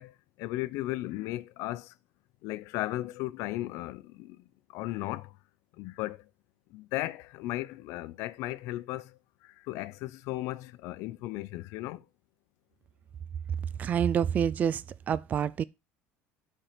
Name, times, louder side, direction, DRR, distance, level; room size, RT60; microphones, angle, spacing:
voice 1, 0.0-1.9 2.4-4.4 4.7-5.4 5.8-6.3 6.7-12.0, left 17 dB, 70° left, 0.6 m, -36 dB
voice 2, 13.8-15.6, right 8 dB, 30° right, 0.3 m, -27 dB
8.9 x 4.4 x 4.9 m
cardioid pair, 125°, 5 cm